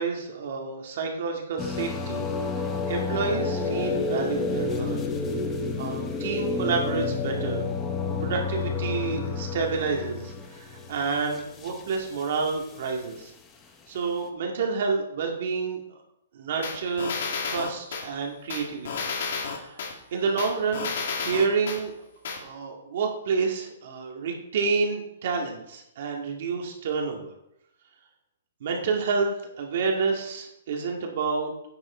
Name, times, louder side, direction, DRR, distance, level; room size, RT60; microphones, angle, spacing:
voice 1, 0.0-2.3 2.9-5.0 5.8-7.7 8.2-13.3 13.9-15.8 16.3-19.1 19.5-21.9 22.4-27.3 28.6-31.5, right 4 dB, 40° right, 1 dB, 1.9 m, -29 dB
sound 1, 1.6-12.5, left 4 dB, 10° left, 0.7 m, -30 dB
sound 2, 16.6-18.0 18.5-19.9 20.4-21.8 22.2-22.4, left 5 dB, 50° left, 2.0 m, -31 dB
9.8 x 8.7 x 4.3 m, 0.79 s
hypercardioid pair, 180°, 0 cm